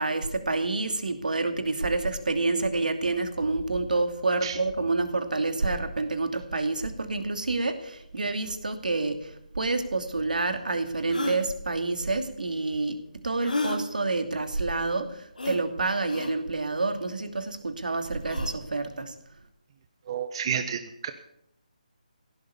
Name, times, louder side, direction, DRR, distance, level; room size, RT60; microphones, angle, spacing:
voice 1, 0.0-19.2, right 3 dB, 75° right, 7 dB, 2.6 m, -28 dB
sound 1, 10.1-10.2 11.1-11.4 13.4-13.8 15.4-15.6 16.1-16.3 18.2-18.5, left 2 dB, 85° left, 3.3 m, -31 dB
voice 2, 20.1-21.1, right 7 dB, 35° right, 8 dB, 1.1 m, -30 dB
16.5 x 11.5 x 7.1 m, 0.75 s
figure-of-eight pair, 155°, 4 cm